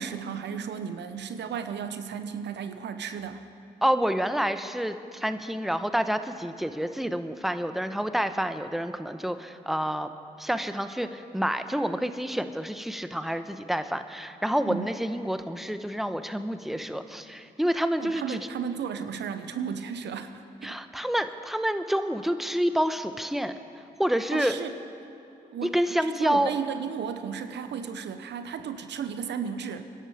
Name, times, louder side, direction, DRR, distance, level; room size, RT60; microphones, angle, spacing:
voice 1, 0.0-3.4 14.7-14.9 18.0-20.8 24.3-24.7 25.4-29.8, right 7 dB, 75° right, 9 dB, 0.9 m, -34 dB
voice 2, 3.8-10.1 10.4-18.5 20.6-23.5 24.0-24.6 25.6-26.5, equal, ahead, 9 dB, 1.0 m, -28 dB
24.5 x 11.0 x 5.0 m, 2.7 s
supercardioid pair, 45°, 18 cm